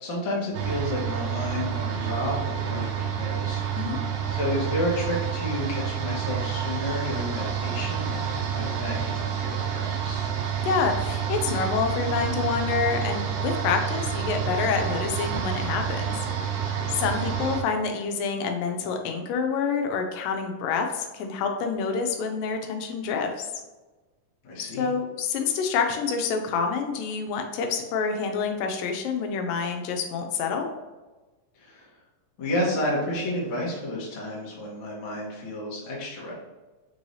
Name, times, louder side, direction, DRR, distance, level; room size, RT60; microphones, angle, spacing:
voice 1, 0.0-3.6 4.3-10.3 17.2-17.4 24.4-24.9 31.6-31.9 32.4-36.3, left 1 dB, 65° left, -5 dB, 1.2 m, -31 dB
sound 1, 0.5-17.6, right 8 dB, 90° right, 1.5 m, -29 dB
voice 2, 10.6-16.1 16.9-23.3 24.8-30.7, left 5 dB, 85° left, 4 dB, 2.2 m, -27 dB
5.3 x 3.1 x 2.7 m, 1.2 s
omnidirectional pair, 4.0 m